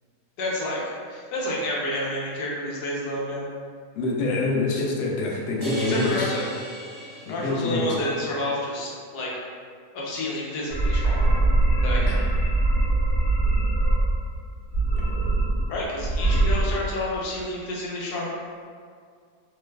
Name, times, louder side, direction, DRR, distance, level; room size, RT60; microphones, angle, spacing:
voice 1, 0.4-3.4 5.9-6.5 7.3-9.3 9.9-11.2 11.8-12.3 15.7-18.3, left 1 dB, 90° left, -4 dB, 1.3 m, -29 dB
voice 2, 3.9-6.3 7.3-7.9 12.0-12.1, left 3 dB, 70° left, -2 dB, 0.7 m, -26 dB
sound 1, 5.6-8.0, right 2 dB, 50° right, 0.9 m, -34 dB
sound 2, 10.7-14.2 14.7-15.7 16.0-16.6, right 2 dB, 40° left, 0.9 m, -22 dB
3.2 x 2.2 x 3.1 m, 2.1 s
omnidirectional pair, 1.6 m